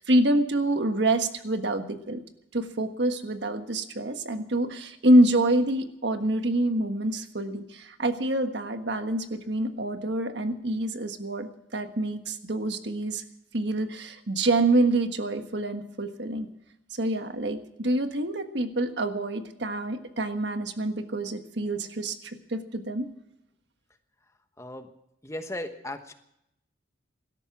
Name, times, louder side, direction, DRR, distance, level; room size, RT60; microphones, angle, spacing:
voice 1, 0.0-2.2 2.5-13.2 13.5-16.5 16.9-23.1, right 1 dB, 60° right, 8 dB, 1.5 m, -26 dB
voice 2, 24.6-24.9 25.2-26.1, left 1 dB, 15° left, 8 dB, 1.0 m, -36 dB
17.5 x 13.0 x 6.0 m, 0.80 s
head